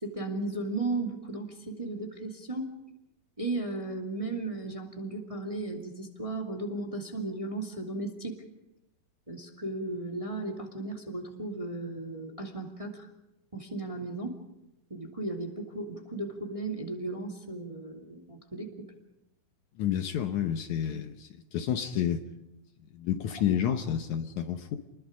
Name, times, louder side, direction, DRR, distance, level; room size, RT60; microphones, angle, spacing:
voice 1, 0.0-2.7 3.4-8.4 9.3-13.1 13.5-14.4 14.9-18.9 23.3-23.4 23.7-23.8, right 2 dB, 10° right, 1 dB, 2.0 m, -35 dB
voice 2, 19.8-22.2 22.9-24.8, left 9 dB, 70° left, 7 dB, 2.2 m, -30 dB
29.0 x 21.5 x 5.2 m, 0.91 s
omnidirectional pair, 3.9 m